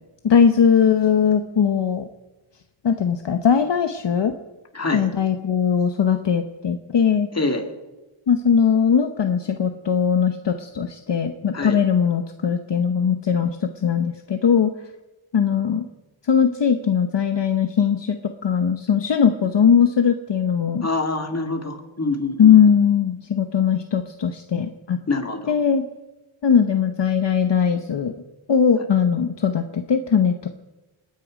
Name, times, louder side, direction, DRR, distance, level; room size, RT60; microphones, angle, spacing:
voice 1, 0.2-2.0 2.8-4.3 4.9-7.3 8.3-14.7 15.3-15.9 16.3-18.2 18.4-20.9 22.4-25.0 25.5-25.9 26.4-28.1 28.5-30.5, left 7 dB, 60° left, 7 dB, 0.9 m, -19 dB
voice 2, 4.7-5.1 7.3-7.6 11.5-11.8 20.8-22.5 25.1-25.5, left 3 dB, 30° left, 4 dB, 2.0 m, -25 dB
28.5 x 9.7 x 5.1 m, 1.1 s
wide cardioid pair, 110°, 48 cm